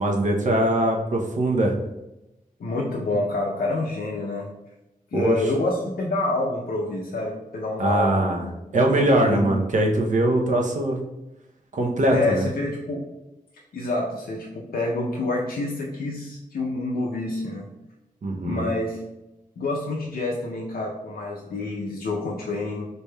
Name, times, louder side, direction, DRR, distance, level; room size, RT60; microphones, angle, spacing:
voice 1, 0.0-1.7 5.1-5.4 7.8-8.4 8.7-11.0 11.7-12.5 18.2-18.7, right 1 dB, 55° right, 1 dB, 0.6 m, -21 dB
voice 2, 2.6-4.5 5.1-8.5 8.9-9.4 12.1-13.0 13.7-17.7 18.4-19.0 19.6-22.9, left 2 dB, 90° left, -3 dB, 0.5 m, -27 dB
4.1 x 3.3 x 2.2 m, 0.95 s
wide cardioid pair, 125°, 15 cm